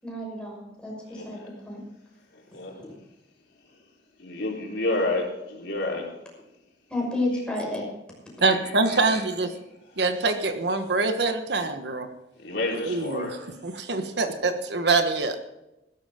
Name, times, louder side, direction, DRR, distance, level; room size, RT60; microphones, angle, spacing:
voice 1, 0.0-1.8 6.9-7.8, left 1 dB, 5° left, -2 dB, 5.9 m, -31 dB
voice 2, 1.1-1.4 2.5-2.8 4.2-6.1 8.5-8.6 8.9-9.0 12.4-13.4, left 2 dB, 75° left, -2 dB, 4.2 m, -29 dB
voice 3, 8.4-9.5 10.0-12.1 12.7-15.4, right 3 dB, 70° right, 7 dB, 1.4 m, -25 dB
16.0 x 13.0 x 3.8 m, 0.94 s
head